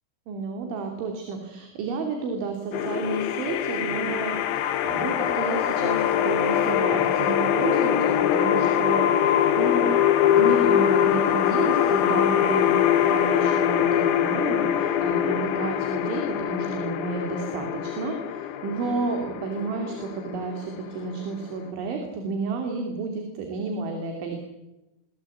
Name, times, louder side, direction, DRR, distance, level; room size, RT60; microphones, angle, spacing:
voice 1, 0.3-9.9 10.3-24.4, right 4 dB, 70° right, 4 dB, 5.2 m, -31 dB
sound 1, 2.7-21.7, left 10 dB, 75° left, 3.7 m, -23 dB
29.0 x 22.0 x 8.5 m, 1.0 s
omnidirectional pair, 5.7 m